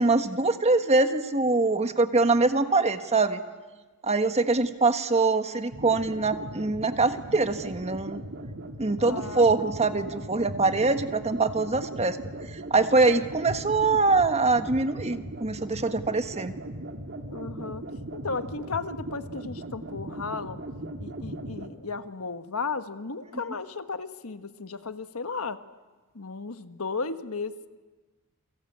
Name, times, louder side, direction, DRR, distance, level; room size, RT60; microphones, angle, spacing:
voice 1, 0.0-3.4 4.0-8.2 8.8-12.2 12.5-16.5, right 3 dB, 30° right, 8 dB, 1.4 m, -24 dB
sound 1, 5.7-21.7, right 1 dB, 55° right, 2.3 m, -38 dB
voice 2, 9.0-9.4 17.3-17.8 18.1-20.6 21.0-25.6 26.1-27.7, left 4 dB, 75° left, 10 dB, 1.3 m, -34 dB
29.5 x 24.0 x 8.6 m, 1.3 s
head